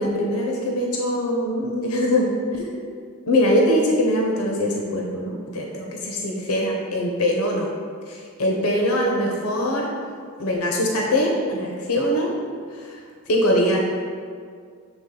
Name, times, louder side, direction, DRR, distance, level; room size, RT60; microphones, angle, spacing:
voice 1, 0.0-2.8 3.3-7.7 8.1-9.9 10.4-12.3 12.7-13.8, equal, 85° left, 0 dB, 0.8 m, -22 dB
7.2 x 3.5 x 3.7 m, 2.1 s
head